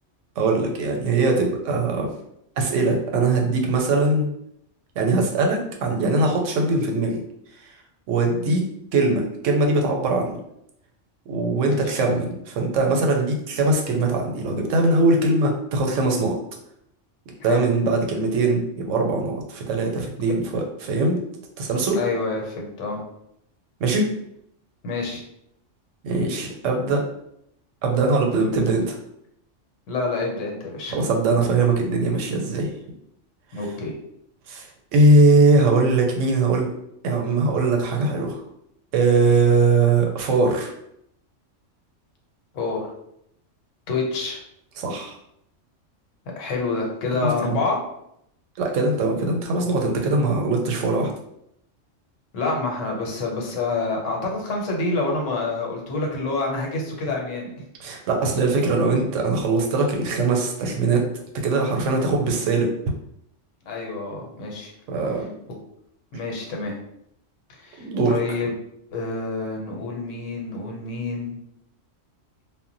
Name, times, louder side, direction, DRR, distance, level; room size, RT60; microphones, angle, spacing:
voice 1, 0.4-2.1 2.6-4.3 5.0-7.2 8.1-8.6 8.9-10.4 11.3-16.4 17.4-21.2 21.6-22.0 23.8-24.1 26.0-27.0 27.8-29.0 30.9-32.7 34.5-36.7 37.0-38.4 38.9-40.7 44.8-45.2 47.2-47.6 48.6-51.1 57.8-61.1 61.3-62.7 64.9-65.3 67.8-68.2, right 3 dB, 85° right, 2 dB, 0.9 m, -21 dB
voice 2, 11.5-12.0 17.4-17.6 22.0-23.0 24.8-25.2 29.9-30.9 33.5-33.9 42.5-42.9 43.9-44.4 46.4-47.8 52.3-57.5 63.7-64.7 66.1-66.8 67.6-68.5 68.9-71.4, left 3 dB, 80° left, 0 dB, 1.0 m, -27 dB
2.1 x 2.1 x 3.8 m, 0.76 s
omnidirectional pair, 1.3 m